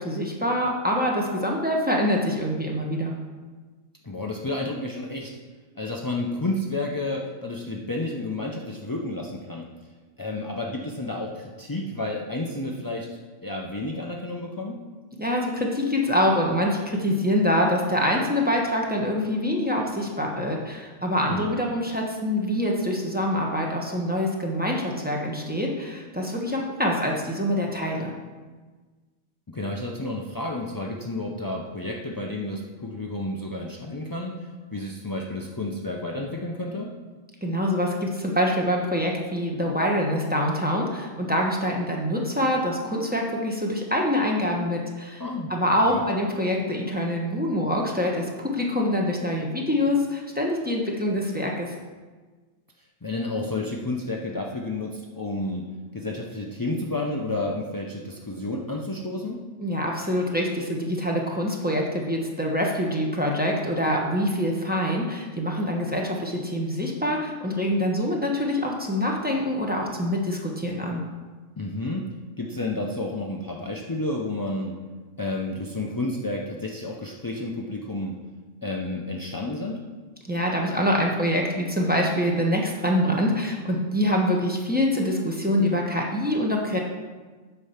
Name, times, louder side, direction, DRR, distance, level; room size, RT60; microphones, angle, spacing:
voice 1, 0.0-3.1 15.2-28.1 37.4-45.2 45.5-51.7 59.6-71.0 80.3-86.8, equal, 5° right, -1 dB, 1.1 m, -25 dB
voice 2, 4.0-5.4 5.8-9.7 10.2-14.8 21.3-21.5 29.5-36.9 45.2-45.5 45.9-46.1 53.0-59.4 71.6-74.8 75.2-78.2 78.6-79.8, left 2 dB, 35° left, -1 dB, 0.3 m, -31 dB
8.4 x 5.4 x 5.7 m, 1.4 s
omnidirectional pair, 1.5 m